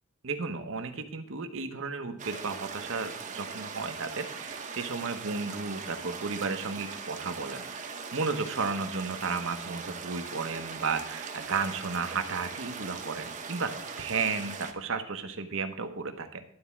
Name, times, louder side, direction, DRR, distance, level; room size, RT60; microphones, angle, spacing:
voice 1, 0.2-13.7 14.0-16.4, right 4 dB, 70° right, 7 dB, 1.1 m, -33 dB
sound 1, 2.2-14.7, right 5 dB, 35° right, 0.9 m, -40 dB
11.5 x 4.4 x 7.1 m, 0.71 s
head